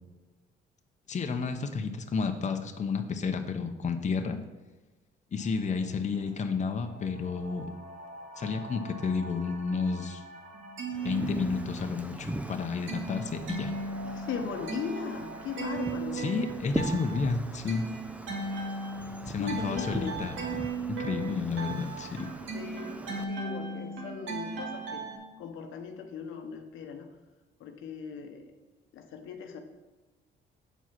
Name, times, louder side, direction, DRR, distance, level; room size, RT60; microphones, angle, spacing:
voice 1, 1.1-4.4 5.3-7.7 8.4-10.2 11.0-13.7 16.1-17.9 19.3-20.3 21.0-22.3, left 5 dB, 35° left, 5 dB, 0.8 m, -31 dB
sound 1, 5.4-15.9, right 1 dB, 40° right, 2.0 m, -48 dB
sound 2, 10.5-12.0 12.3-25.2, right 3 dB, 75° right, 1.8 m, -37 dB
Wind, 10.9-23.2, right 1 dB, 5° right, 0.6 m, -41 dB
voice 2, 14.0-16.3 19.4-20.2 22.0-22.2 22.5-25.0 25.4-27.1 27.6-28.4 28.9-29.6, left 6 dB, 80° left, 5 dB, 1.0 m, -38 dB
8.0 x 4.7 x 5.8 m, 1.2 s
cardioid pair, 90°, 20 cm